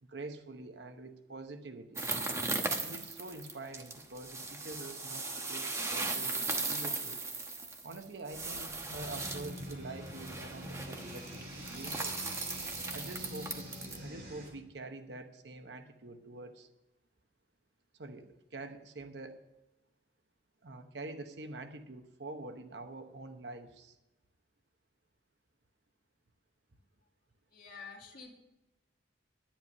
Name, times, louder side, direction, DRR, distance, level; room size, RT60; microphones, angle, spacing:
voice 1, 0.0-2.1 2.8-7.3 7.8-12.2 12.9-13.7 14.0-16.7 18.0-19.4 20.6-24.0, right 2 dB, 75° right, 8 dB, 0.9 m, -46 dB
sound 1, 2.0-14.0, right 3 dB, 15° right, 1.1 m, -38 dB
sound 2, 9.0-14.5, equal, 55° right, 4.2 m, -45 dB
voice 2, 27.5-28.3, left 5 dB, 50° left, -4 dB, 2.2 m, -48 dB
11.0 x 10.5 x 5.4 m, 0.96 s
head